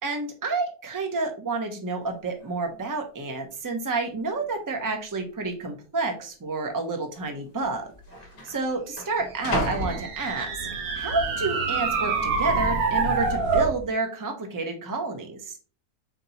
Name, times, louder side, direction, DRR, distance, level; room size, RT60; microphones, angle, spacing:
voice 1, 0.0-7.9 8.5-10.5 11.0-15.6, right 3 dB, 25° right, 4 dB, 0.4 m, -29 dB
sound 1, 2.0-2.1 2.4-2.8 3.5-3.6 4.4-4.9 5.1-5.3 6.1-6.3 7.3-7.4 7.6-10.8 11.3-11.7, left 1 dB, 40° left, 1.2 m, -35 dB
sound 2, 9.4-13.8, right 4 dB, 70° right, 1.3 m, -26 dB
4.4 x 2.9 x 4.0 m, 0.38 s
omnidirectional pair, 1.6 m